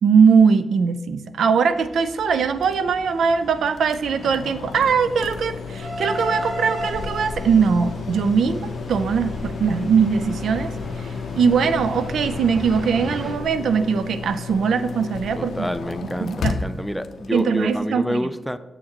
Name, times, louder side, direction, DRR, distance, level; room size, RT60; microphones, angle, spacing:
voice 1, 0.0-10.7 11.3-15.7 16.2-16.6 17.3-18.3, right 6 dB, 80° right, 11 dB, 0.4 m, -20 dB
sound 1, 1.6-13.3, equal, 50° right, 2.3 m, -36 dB
sound 2, 2.6-17.8, left 5 dB, 80° left, 0.5 m, -33 dB
voice 2, 15.4-18.6, equal, ahead, 13 dB, 0.4 m, -28 dB
7.2 x 6.5 x 2.9 m, 1.1 s
cardioid pair, 80°, 0 cm